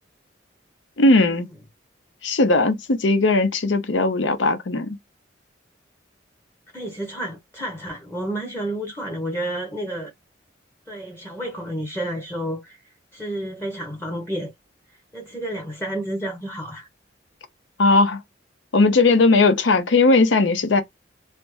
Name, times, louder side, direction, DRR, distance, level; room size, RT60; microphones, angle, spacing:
voice 1, 1.0-1.5 2.2-4.9 17.8-18.2 18.7-20.8, left 3 dB, 80° left, 0.7 m, -18 dB
voice 2, 6.7-10.1 10.9-12.8 13.1-14.5 15.1-16.9, right 1 dB, 15° left, 0.7 m, -30 dB
3.3 x 2.0 x 3.0 m
head